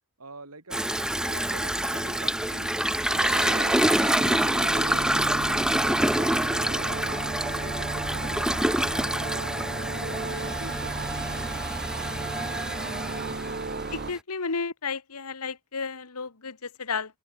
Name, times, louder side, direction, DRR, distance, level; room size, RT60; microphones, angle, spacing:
voice 1, 0.2-0.9 1.2-2.8 3.1-7.0 7.4-12.8 13.1-13.6, right 2 dB, 85° right, 7.2 m, -46 dB
Toilet flush, 0.7-14.1, right 1 dB, 5° right, 0.8 m, -27 dB
sound 1, 3.2-14.1, right 3 dB, 45° right, 1.4 m, -35 dB
voice 2, 13.9-17.2, left 5 dB, 80° left, 1.5 m, -33 dB
open air
head